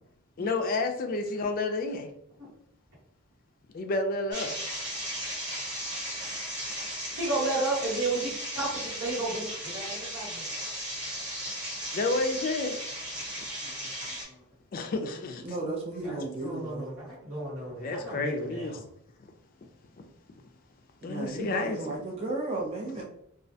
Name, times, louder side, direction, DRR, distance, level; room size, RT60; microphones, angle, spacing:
voice 1, 0.4-2.1 3.7-4.6 11.9-12.8 14.7-15.4 17.8-18.8 19.2-19.3 21.0-22.0, left 3 dB, 40° left, 0.3 m, -30 dB
sound 1, 4.3-14.2, equal, 50° right, 1.1 m, -36 dB
voice 2, 7.2-8.7 9.0-10.4 13.6-13.7 14.2-14.4 16.0-18.8, right 2 dB, 75° right, 1.3 m, -33 dB
voice 3, 15.4-16.9 21.0-23.1, right 2 dB, 30° right, 0.4 m, -34 dB
2.3 x 2.1 x 2.6 m
head